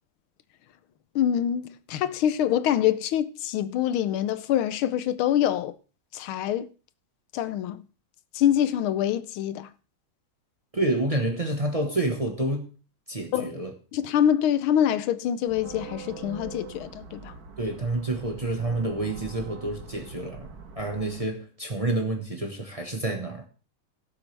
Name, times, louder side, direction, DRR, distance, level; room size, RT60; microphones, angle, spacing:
voice 1, 1.1-5.7 6.1-6.7 7.3-7.8 8.3-9.7 13.3-13.5 13.9-17.3, left 10 dB, 90° left, 1.6 m, -25 dB
voice 2, 10.7-12.7 13.1-13.7 17.6-20.5 20.8-23.5, right 2 dB, 20° right, 1.1 m, -28 dB
sound 1, 15.5-21.2, right 5 dB, 50° right, 1.6 m, -43 dB
17.0 x 7.6 x 3.3 m
omnidirectional pair, 2.2 m